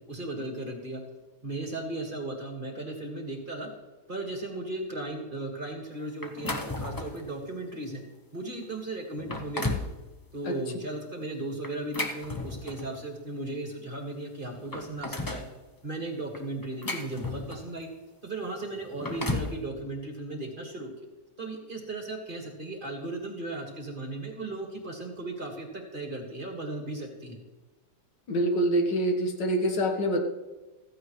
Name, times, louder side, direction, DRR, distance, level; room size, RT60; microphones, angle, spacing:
voice 1, 0.1-1.0 1.4-3.7 4.1-8.0 8.3-9.7 10.3-15.5 15.8-17.9 18.2-20.9 21.4-27.4, right 2 dB, 30° right, 2 dB, 1.9 m, -36 dB
sound 1, 6.2-7.3 7.8-8.0 8.6-8.7 9.1-9.9 11.6-13.0 14.0-14.1 14.4-15.5 16.3-17.8 18.8-19.6, left 2 dB, 30° left, 0.4 m, -34 dB
voice 2, 28.3-30.2, right 1 dB, 75° left, 4 dB, 2.0 m, -25 dB
15.0 x 14.5 x 3.2 m, 1.2 s
omnidirectional pair, 1.9 m